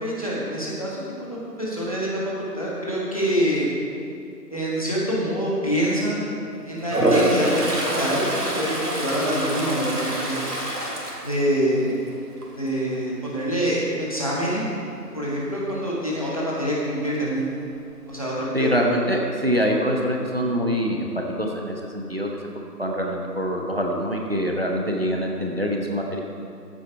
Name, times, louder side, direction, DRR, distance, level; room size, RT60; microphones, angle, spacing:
voice 1, 0.0-3.7 4.5-6.3 6.6-10.4 11.2-12.1 12.5-14.7 15.1-17.5 18.1-18.8, equal, 20° left, -6 dB, 1.5 m, -26 dB
Toilet flush, 6.8-12.0 12.4-12.8 17.3-17.4 17.6-18.4, right 1 dB, 70° right, 2.8 m, -25 dB
voice 2, 18.5-22.3 22.8-26.2, equal, 35° right, 0 dB, 1.0 m, -24 dB
14.5 x 8.5 x 4.6 m, 2.5 s
figure-of-eight pair, 170°, 49 cm